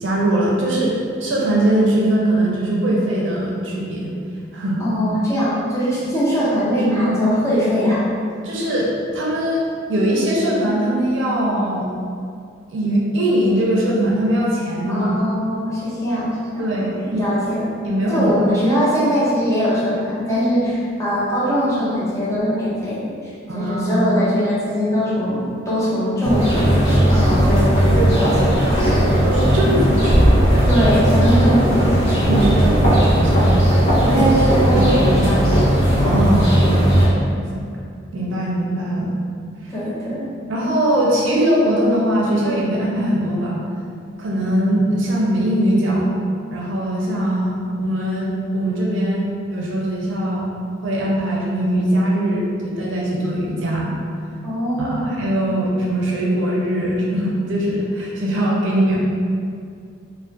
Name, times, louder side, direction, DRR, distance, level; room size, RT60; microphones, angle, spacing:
voice 1, 0.0-0.9 1.2-4.1 4.5-4.8 8.4-8.9 9.1-9.6 9.9-11.9 12.7-15.1 16.6-17.2 17.8-18.3 20.6-20.7 23.5-24.0 29.2-30.4 32.1-33.6 34.0-34.2 34.7-35.2 35.9-36.5 36.8-37.0 37.5-37.6 38.1-39.1 40.5-43.6 44.2-46.1 46.5-49.2 49.5-50.5 50.8-53.9 54.8-59.0, right 1 dB, 70° right, -4 dB, 0.5 m, -21 dB
voice 2, 4.8-8.0 14.9-17.7 18.1-28.8 30.7-32.1 34.0-35.5 39.7-40.3 54.4-55.1, equal, 15° left, -10 dB, 0.6 m, -21 dB
sound 1, 26.2-37.1, equal, 80° left, 0.7 m, -16 dB
2.3 x 2.1 x 2.5 m, 2.3 s
head